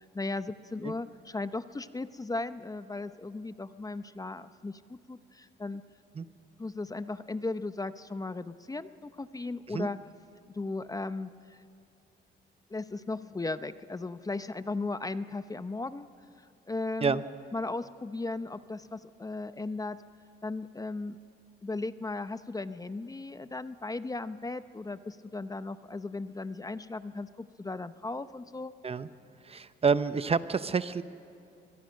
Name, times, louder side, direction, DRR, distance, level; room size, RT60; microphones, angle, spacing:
voice 1, 0.0-5.8 6.6-10.0 10.5-11.7 12.7-16.1 16.4-17.2 17.5-20.0 20.4-21.2 21.6-28.7, left 3 dB, 20° left, 12 dB, 0.7 m, -36 dB
voice 2, 29.5-31.0, right 5 dB, 30° right, 13 dB, 0.7 m, -28 dB
24.0 x 21.5 x 6.4 m, 2.7 s
cardioid pair, 90°, 20 cm